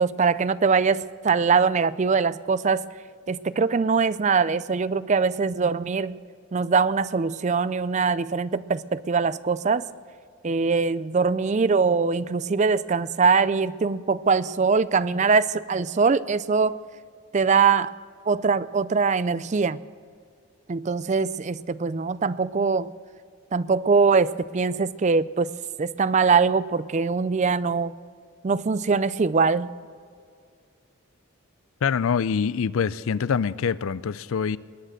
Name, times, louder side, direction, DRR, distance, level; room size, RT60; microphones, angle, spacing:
voice 1, 0.0-2.8 3.3-6.2 6.5-9.8 10.4-16.8 17.3-17.9 18.3-19.8 20.7-22.9 23.5-25.5 25.8-27.9 28.4-29.7, right 5 dB, 30° right, 0.4 m, -22 dB
voice 2, 31.8-34.6, left 6 dB, 65° left, 0.4 m, -25 dB
21.0 x 9.0 x 6.5 m
head